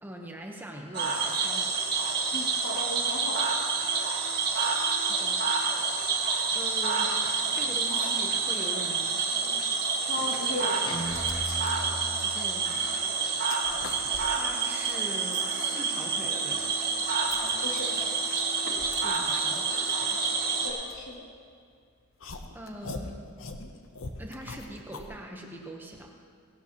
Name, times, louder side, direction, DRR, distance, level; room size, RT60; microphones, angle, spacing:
voice 1, 0.0-1.7 5.0-5.8 6.5-7.2 7.5-9.2 12.2-13.0 14.3-16.8 19.0-20.4 22.5-23.3 24.2-26.1, right 1 dB, 10° right, 1 dB, 0.9 m, -42 dB
Cricket / Frog, 0.9-20.7, right 4 dB, 45° right, 1.9 m, -28 dB
voice 2, 2.3-3.5 10.1-10.9 17.6-17.9 20.6-21.3, left 2 dB, 80° left, -2 dB, 2.3 m, -36 dB
sound 1, 9.9-10.0 10.7-13.0 13.3-15.5 16.0-21.6 22.2-25.1, left 3 dB, 60° left, 0.8 m, -44 dB
Guitar, 10.9-12.9, equal, 20° left, 0.8 m, -38 dB
17.5 x 12.0 x 3.0 m, 2.2 s
head